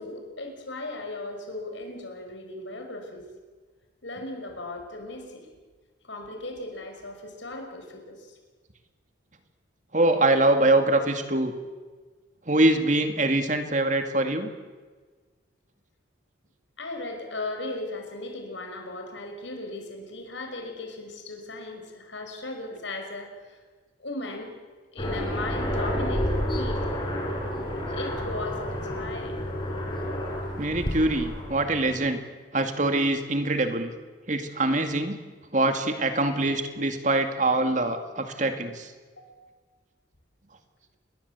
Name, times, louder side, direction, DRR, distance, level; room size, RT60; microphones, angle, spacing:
voice 1, 0.0-3.3 4.0-5.5 6.0-8.4 16.8-23.6 24.0-24.5 24.9-26.8 27.9-29.4 39.2-39.5, left 2 dB, 75° left, 4 dB, 5.6 m, -37 dB
voice 2, 9.9-11.5 12.5-14.5 30.6-32.2 32.5-33.9 34.3-35.2 35.5-38.9, right 2 dB, 40° right, 7 dB, 2.3 m, -24 dB
Aircraft, 25.0-32.1, equal, 25° left, 6.0 m, -30 dB
28.5 x 22.0 x 8.3 m, 1.4 s
head